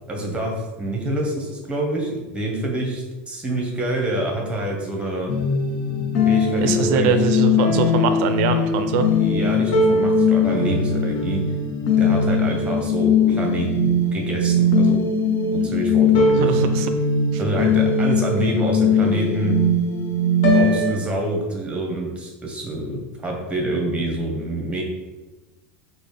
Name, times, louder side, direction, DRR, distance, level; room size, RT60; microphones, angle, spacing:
voice 1, 0.1-5.3 6.3-7.2 9.1-11.4 12.0-15.0 15.5-16.6 17.4-19.6 20.4-24.8, right 1 dB, 15° right, 0 dB, 0.9 m, -26 dB
sound 1, 5.3-20.9, left 3 dB, 55° left, 0.7 m, -20 dB
voice 2, 6.6-9.1 16.4-16.9 17.3-17.4, right 6 dB, 60° right, 7 dB, 0.4 m, -22 dB
3.9 x 2.1 x 3.3 m, 1.1 s
hypercardioid pair, 105°, 7 cm